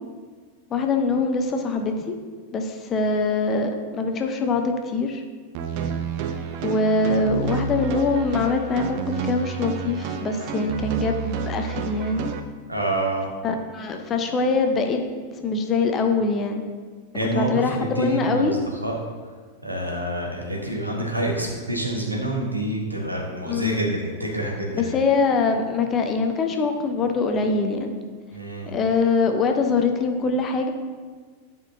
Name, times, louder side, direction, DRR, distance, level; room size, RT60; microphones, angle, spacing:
voice 1, 0.7-2.1 2.5-5.2 6.6-12.3 13.4-15.0 15.4-16.6 17.3-18.6 23.4-23.9 24.7-27.9 28.7-30.7, left 4 dB, 25° left, 4 dB, 0.7 m, -23 dB
sound 1, 5.5-12.4, right 6 dB, 45° right, 0.5 m, -29 dB
voice 2, 12.7-13.3 17.1-18.9 19.6-24.9 28.3-28.7, right 1 dB, 85° right, -1 dB, 1.3 m, -27 dB
9.8 x 5.4 x 2.7 m, 1.5 s
figure-of-eight pair, 90°, 0 cm